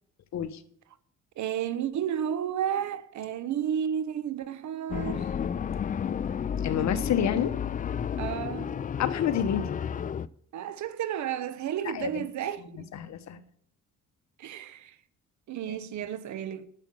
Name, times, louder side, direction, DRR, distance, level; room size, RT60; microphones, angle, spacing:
voice 1, 1.4-5.3 8.2-8.8 10.5-12.9 14.4-14.9 15.5-16.7, right 9 dB, 70° right, 0.9 m, -32 dB
sound 1, 4.9-10.3, left 8 dB, 30° left, 0.4 m, -31 dB
voice 2, 6.6-7.5 9.0-9.8 11.9-12.3 12.7-13.4, left 9 dB, 65° left, 1.1 m, -29 dB
9.1 x 7.7 x 7.7 m
cardioid pair, 90°, 30 cm